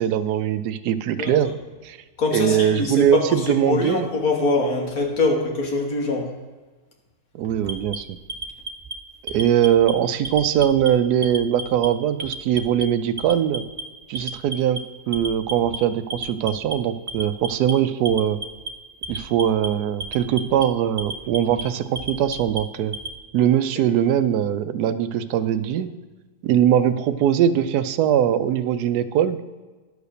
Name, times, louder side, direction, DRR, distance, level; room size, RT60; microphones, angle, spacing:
voice 1, 0.0-1.5 1.8-2.0 2.3-4.1 7.3-8.2 9.2-13.6 14.1-14.8 15.1-18.4 19.1-22.9 23.3-25.9 26.4-29.4, right 10 dB, 85° right, 12 dB, 1.1 m, -21 dB
voice 2, 2.2-6.3, left 3 dB, 70° left, 1 dB, 2.0 m, -23 dB
Alarm, 7.6-8.9 9.3-9.9 10.2-10.9 11.2-11.9 12.2-12.8 13.2-13.8 14.2-14.8 15.1-15.8 16.1-16.7 17.1-17.7 18.1-18.7 19.0-19.7 20.0-20.6 21.0-21.6 22.0-23.1, right 2 dB, 40° right, 0.4 m, -32 dB
11.5 x 5.0 x 6.6 m, 1.3 s
omnidirectional pair, 1.6 m